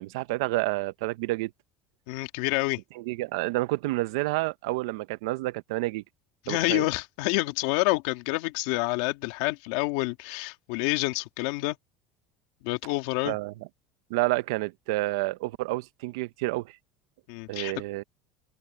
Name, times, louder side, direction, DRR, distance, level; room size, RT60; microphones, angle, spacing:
voice 1, 0.0-1.5 3.0-6.0 6.5-6.9 13.3-13.5 14.1-16.8 17.5-18.0, right 20 dB, 90° right, 0.7 m, -29 dB
voice 2, 2.1-2.8 6.5-11.8 12.6-13.4 17.3-17.7, left 21 dB, 70° left, 2.6 m, -28 dB
open air
cardioid pair, 180°, 2 cm